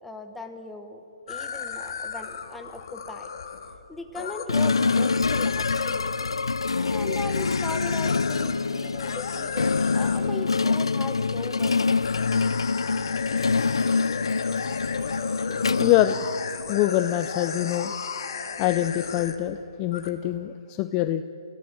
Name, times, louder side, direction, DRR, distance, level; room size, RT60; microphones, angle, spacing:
voice 1, 0.0-3.3 3.9-6.1 6.8-12.1, left 2 dB, 5° left, 6 dB, 1.4 m, -39 dB
sound 1, 1.3-6.4 7.2-8.6 9.0-10.3 12.0-19.6 19.9-20.1, left 6 dB, 55° left, 1.9 m, -35 dB
sound 2, 4.5-16.8, left 4 dB, 85° left, 0.4 m, -25 dB
voice 2, 15.5-16.2 16.7-17.9 18.6-21.2, left 13 dB, 25° left, 11 dB, 0.6 m, -24 dB
26.0 x 16.5 x 7.7 m, 3.0 s
hypercardioid pair, 140°, 3 cm